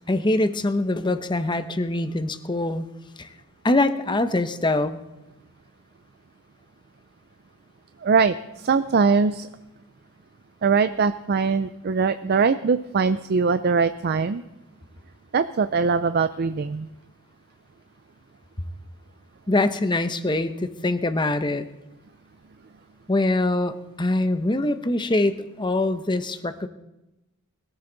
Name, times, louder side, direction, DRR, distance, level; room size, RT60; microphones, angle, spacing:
voice 1, 0.1-2.9 3.2-3.3 3.6-5.0 19.5-21.7 23.1-26.7, left 2 dB, 20° left, 10 dB, 0.8 m, -23 dB
voice 2, 8.0-9.5 10.6-14.4 15.3-16.9, right 5 dB, 45° right, 11 dB, 0.4 m, -22 dB
21.0 x 14.0 x 4.0 m, 0.96 s
head